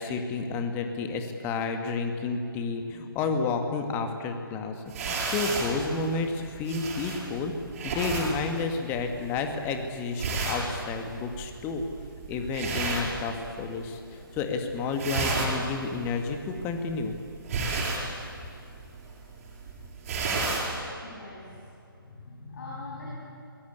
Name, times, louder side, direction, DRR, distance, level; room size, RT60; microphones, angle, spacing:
voice 1, 0.0-4.7 5.0-7.5 7.8-11.8 12.3-17.2, left 4 dB, 15° left, 5 dB, 2.1 m, -31 dB
sound 1, 4.9-13.8 14.1-14.6 14.8-20.8, right 3 dB, 35° right, 7.5 m, -32 dB
voice 2, 21.0-23.2, left 2 dB, 50° left, -4 dB, 7.3 m, -42 dB
26.5 x 21.5 x 8.4 m, 2.7 s
figure-of-eight pair, 140°, 12 cm